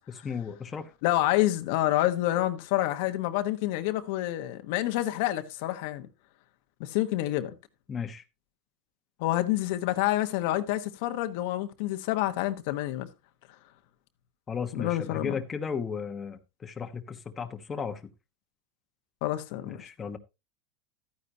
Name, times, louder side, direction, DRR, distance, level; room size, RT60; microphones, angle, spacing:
voice 1, 0.1-0.9 7.9-8.2 14.5-18.0 19.6-20.2, left 6 dB, 25° left, 1.2 m, -35 dB
voice 2, 1.0-6.1 6.8-7.5 9.2-13.1 14.7-15.3 19.2-19.8, left 15 dB, 70° left, 1.2 m, -28 dB
13.0 x 9.8 x 2.8 m
supercardioid pair, 125°, 0 cm